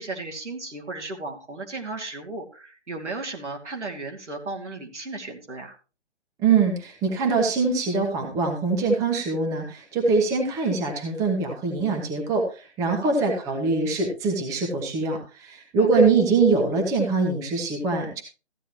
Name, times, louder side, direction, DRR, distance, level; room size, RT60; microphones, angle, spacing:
voice 1, 0.0-5.7 13.0-13.1 15.8-16.1, right 3 dB, 90° right, 3 dB, 2.8 m, -35 dB
voice 2, 6.4-18.2, right 4 dB, 10° right, 2 dB, 1.2 m, -23 dB
14.5 x 9.1 x 3.0 m, 0.34 s
hypercardioid pair, 155°, 34 cm